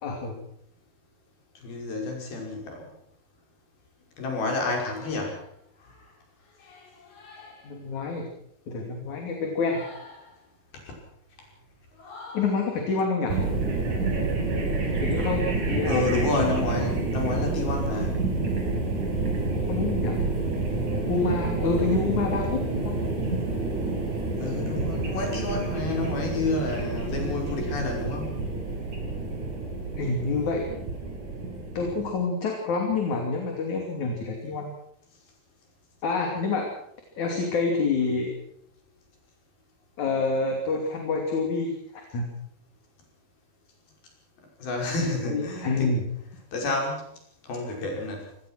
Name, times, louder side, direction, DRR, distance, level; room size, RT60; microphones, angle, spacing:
voice 1, 0.0-0.4 7.6-8.3 8.7-9.8 12.3-13.4 15.0-16.1 19.7-20.2 21.1-23.0 29.9-30.7 31.8-34.7 36.0-36.7 37.2-38.3 40.0-42.3 45.1-46.1, left 4 dB, 55° left, 2 dB, 4.1 m, -27 dB
voice 2, 1.6-2.9 4.2-5.4 5.8-5.9 6.6-7.7 9.7-10.3 12.0-12.5 15.8-18.2 24.4-28.4 44.6-45.9 46.5-47.1 47.4-48.3, left 3 dB, 80° left, 1 dB, 7.4 m, -30 dB
sound 1, 13.3-32.1, right 3 dB, 55° right, 7.1 m, -28 dB
24.5 x 19.5 x 6.3 m, 0.72 s
omnidirectional pair, 4.3 m